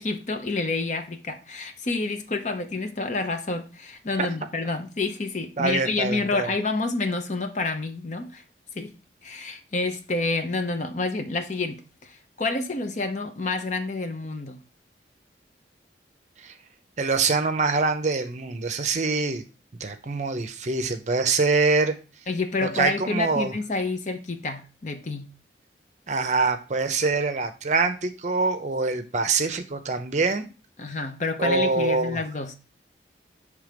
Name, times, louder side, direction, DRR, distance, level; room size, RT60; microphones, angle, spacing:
voice 1, 0.0-8.4 8.7-8.9 9.2-14.6 22.3-25.3 30.8-32.5, left 3 dB, 40° left, 0.7 m, -28 dB
voice 2, 5.6-6.5 16.4-16.5 17.0-19.4 19.8-22.0 22.6-23.5 26.1-30.4 31.4-32.2, right 4 dB, 40° right, 0.6 m, -24 dB
6.2 x 3.4 x 5.1 m
head